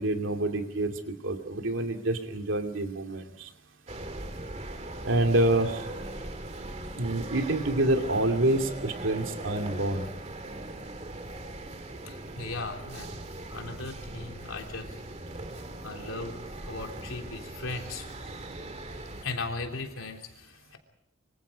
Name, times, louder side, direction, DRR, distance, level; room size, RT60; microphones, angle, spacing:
voice 1, 0.0-3.5 5.0-5.8 6.9-10.1, right 1 dB, 70° right, 5 dB, 2.5 m, -27 dB
sound 1, 3.9-19.2, right 2 dB, 35° right, 2.1 m, -40 dB
voice 2, 12.1-15.0 15.8-18.1 19.2-20.8, left 3 dB, 80° left, 3 dB, 3.5 m, -38 dB
25.5 x 25.5 x 5.2 m, 0.72 s
head